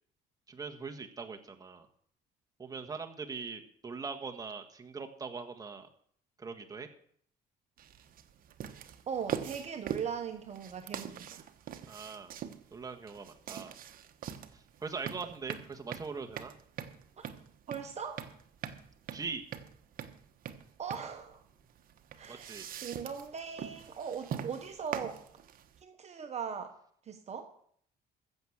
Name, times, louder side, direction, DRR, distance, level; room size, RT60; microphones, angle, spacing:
voice 1, 0.5-1.9 2.6-5.9 6.4-6.9 11.9-12.3 12.7-13.8 14.5-16.5 19.1-19.4 22.3-22.6, right 4 dB, 20° right, 4 dB, 1.5 m, -41 dB
sound 1, 7.8-25.8, right 9 dB, 60° right, 1.1 m, -43 dB
voice 2, 9.1-11.4 17.2-17.3 17.7-18.3 20.8-21.4 22.2-22.5 22.8-25.2 25.8-26.7 27.0-27.5, right 7 dB, 40° right, 6 dB, 1.2 m, -39 dB
15.0 x 6.3 x 7.3 m, 0.62 s
cardioid pair, 110°, 17 cm